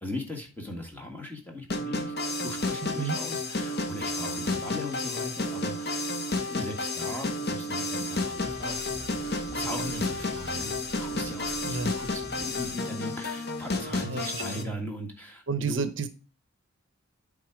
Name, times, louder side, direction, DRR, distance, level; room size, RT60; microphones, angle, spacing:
voice 1, 0.0-6.2 6.5-8.8 9.5-10.7 11.0-15.9, left 1 dB, 10° left, 1 dB, 1.6 m, -39 dB
sound 1, 1.7-14.6, left 2 dB, 50° left, 1.1 m, -31 dB
sound 2, 8.4-12.8, right 1 dB, 25° right, 2.4 m, -45 dB
voice 2, 14.0-14.7 15.5-16.1, right 5 dB, 60° right, 12 dB, 0.6 m, -31 dB
8.3 x 3.7 x 4.7 m, 0.34 s
head